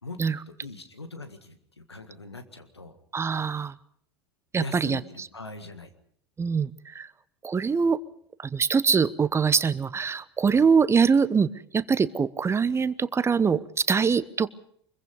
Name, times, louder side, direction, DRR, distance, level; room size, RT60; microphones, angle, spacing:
voice 1, 0.0-3.0 4.6-5.9 10.5-10.7, left 3 dB, 90° left, 9 dB, 1.8 m, -41 dB
voice 2, 3.1-3.7 4.5-5.0 6.4-7.1 7.4-8.0 8.4-14.5, right 5 dB, 20° right, 17 dB, 0.8 m, -23 dB
24.5 x 22.0 x 5.4 m, 0.66 s
figure-of-eight pair, 75°, 13 cm